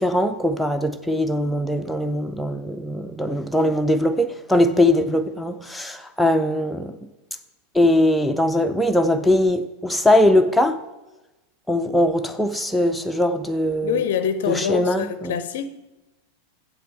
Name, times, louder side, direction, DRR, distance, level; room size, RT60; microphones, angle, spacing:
voice 1, 0.0-7.0 7.7-10.8 11.7-14.0 14.5-15.4, left 1 dB, ahead, 0.4 m, -21 dB
voice 2, 13.8-15.7, left 8 dB, 55° left, 0.5 m, -25 dB
7.6 x 7.5 x 5.6 m
figure-of-eight pair, 90°, 0 cm